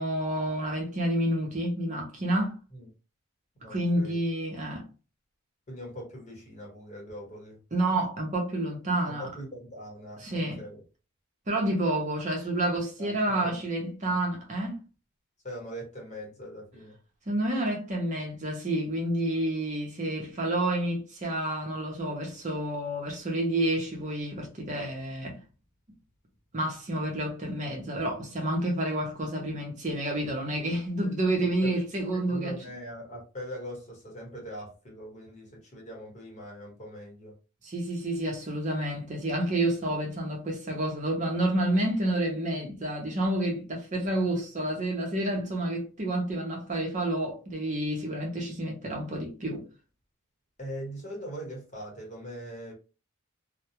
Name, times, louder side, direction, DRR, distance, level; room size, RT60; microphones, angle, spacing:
voice 1, 0.0-2.6 3.7-4.8 7.7-9.3 10.2-10.6 11.5-14.8 17.3-25.4 26.5-32.6 37.6-49.6, right 1 dB, 35° right, 0.6 m, -29 dB
voice 2, 3.6-4.2 5.7-7.6 9.0-10.8 13.0-13.6 14.0-14.2 15.4-17.0 31.4-31.7 32.3-37.4 50.6-52.7, equal, 35° left, 1.1 m, -41 dB
2.2 x 2.0 x 2.9 m
head